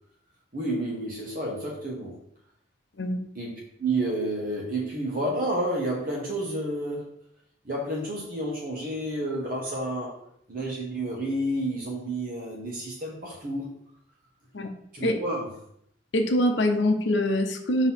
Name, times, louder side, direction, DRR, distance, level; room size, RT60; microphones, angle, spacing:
voice 1, 0.5-2.1 3.3-7.2 7.6-10.2 10.5-13.7 14.9-15.5, right 1 dB, 45° right, -3 dB, 1.1 m, -30 dB
voice 2, 16.1-17.9, left 1 dB, 65° left, 5 dB, 0.7 m, -24 dB
6.1 x 2.9 x 5.7 m, 0.74 s
head